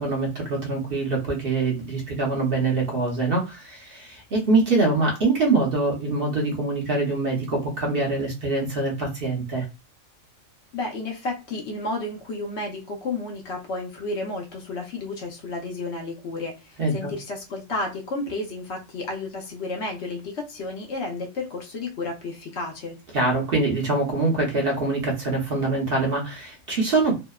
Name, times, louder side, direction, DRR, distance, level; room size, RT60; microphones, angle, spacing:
voice 1, 0.0-9.6 16.8-17.1 23.1-27.2, right 3 dB, 50° right, 0.8 m, -24 dB
voice 2, 10.7-23.0, left 2 dB, 60° left, 0.9 m, -32 dB
2.7 x 2.0 x 2.2 m
omnidirectional pair, 1.4 m